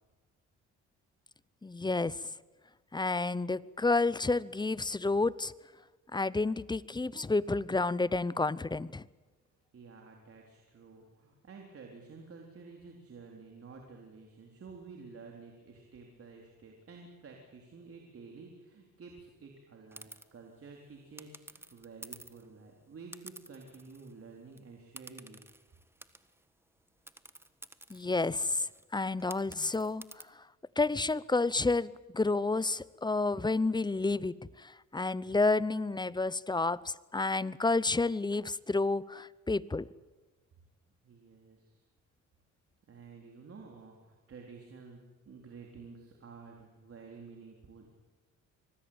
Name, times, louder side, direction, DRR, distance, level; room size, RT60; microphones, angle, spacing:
voice 1, 1.6-2.2 2.9-5.5 6.1-9.0 27.9-28.7 28.9-30.0 30.8-39.9, left 3 dB, 15° left, 19 dB, 0.7 m, -30 dB
voice 2, 9.7-25.4 41.0-41.8 42.9-47.9, right 4 dB, 50° right, 1 dB, 3.9 m, -51 dB
sound 1, 19.9-20.3 21.2-22.5 23.1-24.2 24.5-24.6 25.0-26.4 27.1-30.2, right 1 dB, 10° right, 1.5 m, -51 dB
25.5 x 19.5 x 8.8 m, 1.3 s
cardioid pair, 90°, 30 cm